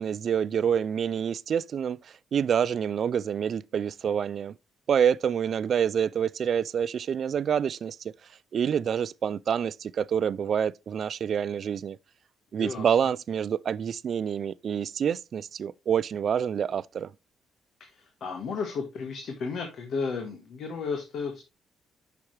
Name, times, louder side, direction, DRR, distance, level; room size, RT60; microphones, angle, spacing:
voice 1, 0.0-4.6 4.9-8.1 8.5-12.0 12.5-17.1, right 8 dB, 55° right, 0.3 m, -27 dB
voice 2, 12.6-12.9 17.8-21.4, left 5 dB, 65° left, 1.4 m, -33 dB
8.4 x 5.9 x 3.1 m
cardioid pair, 90°, 0 cm